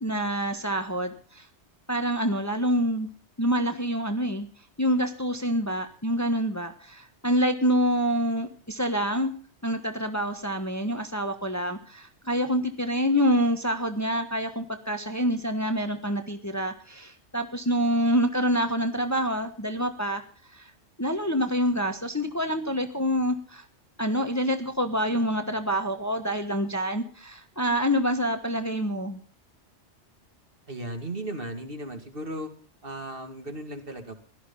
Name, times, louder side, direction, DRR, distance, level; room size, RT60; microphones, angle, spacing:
voice 1, 0.0-1.5 1.9-3.1 3.4-4.5 4.8-9.3 9.6-20.2 20.5-20.7 21.0-23.6 24.0-29.2, equal, 15° left, 7 dB, 1.3 m, -26 dB
voice 2, 30.7-32.5 32.8-34.1, right 1 dB, 50° right, 5 dB, 2.7 m, -36 dB
16.5 x 13.0 x 5.6 m, 0.42 s
omnidirectional pair, 1.2 m